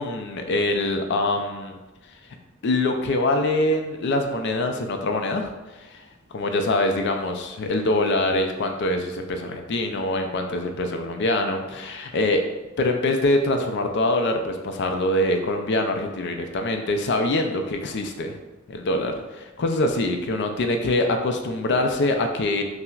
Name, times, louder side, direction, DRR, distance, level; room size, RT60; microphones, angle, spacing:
voice 1, 0.0-1.8 2.6-5.5 5.8-6.0 6.3-12.4 12.8-18.4 18.7-22.6, left 2 dB, 55° left, 4 dB, 0.4 m, -24 dB
5.6 x 2.1 x 2.3 m, 1.1 s
head